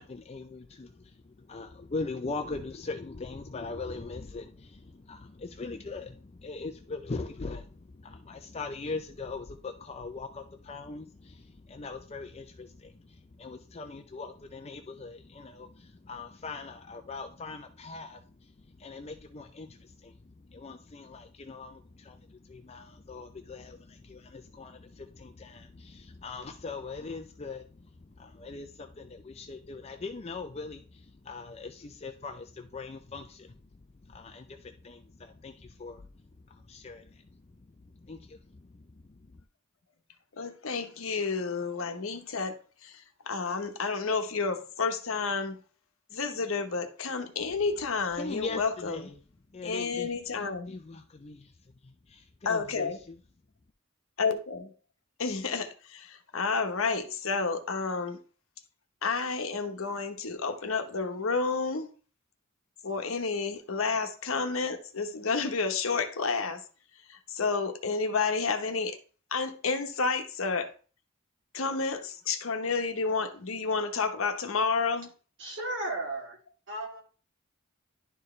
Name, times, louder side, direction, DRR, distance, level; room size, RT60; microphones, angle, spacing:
voice 1, 0.0-39.4 48.1-49.2 49.5-50.1 50.7-53.2, left 3 dB, 30° left, 0.5 m, -41 dB
voice 2, 40.3-45.6 46.1-49.1 49.6-50.8 52.4-53.0 54.2-54.7 55.2-58.2 59.0-61.9 62.8-66.6 67.1-69.0 69.3-70.7 71.5-75.1, left 4 dB, 70° left, 1.0 m, -30 dB
voice 3, 75.4-76.4 76.7-77.0, right 2 dB, 60° right, 2.7 m, -34 dB
11.0 x 4.6 x 3.2 m
head